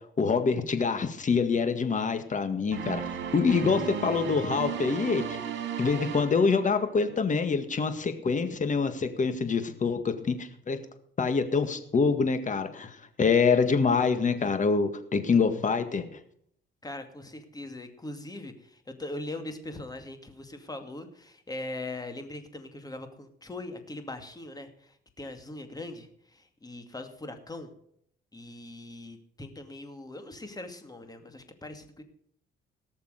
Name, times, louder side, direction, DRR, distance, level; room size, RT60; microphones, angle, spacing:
voice 1, 0.2-3.0 3.3-5.2 5.8-10.8 11.2-16.1, left 5 dB, 40° left, 9 dB, 1.9 m, -25 dB
sound 1, 2.7-7.2, right 7 dB, 65° right, 2.5 m, -35 dB
voice 2, 16.8-27.7 28.3-32.0, left 2 dB, 20° left, 7 dB, 2.4 m, -41 dB
18.0 x 6.8 x 6.7 m, 0.67 s
cardioid pair, 90°, 20 cm